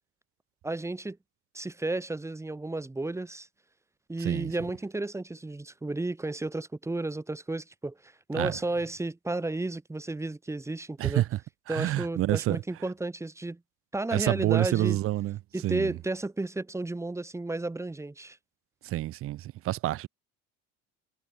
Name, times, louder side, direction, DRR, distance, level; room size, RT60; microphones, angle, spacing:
voice 1, 0.6-1.2 1.5-3.5 4.1-11.2 11.7-13.6 13.9-15.0 15.5-18.4, right 2 dB, 10° right, 5.0 m, -33 dB
voice 2, 4.2-4.5 8.3-8.5 11.0-11.3 11.7-12.6 14.1-15.4 15.6-15.9 18.8-20.1, right 15 dB, 45° right, 1.0 m, -28 dB
cardioid pair, 125°, 30 cm